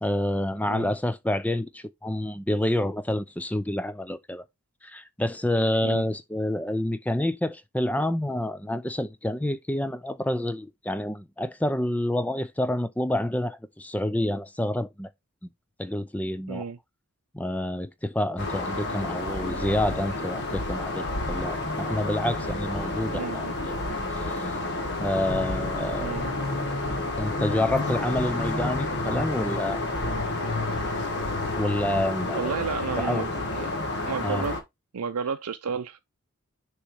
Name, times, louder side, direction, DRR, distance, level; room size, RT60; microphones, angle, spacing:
voice 1, 0.0-4.4 4.8-15.1 15.8-16.7 17.3-23.7 24.1-24.5 25.0-26.2 27.2-29.8 31.5-32.6 33.0-33.3 34.2-34.5, left 1 dB, 5° left, 0.5 m, -28 dB
voice 2, 16.5-16.8 23.1-23.6 26.0-26.3 32.3-33.3 33.5-33.7 34.1-34.6 34.9-36.0, right 6 dB, 85° right, 0.5 m, -31 dB
sound 1, 18.4-34.6, left 2 dB, 50° left, 1.7 m, -30 dB
6.6 x 3.1 x 4.8 m
head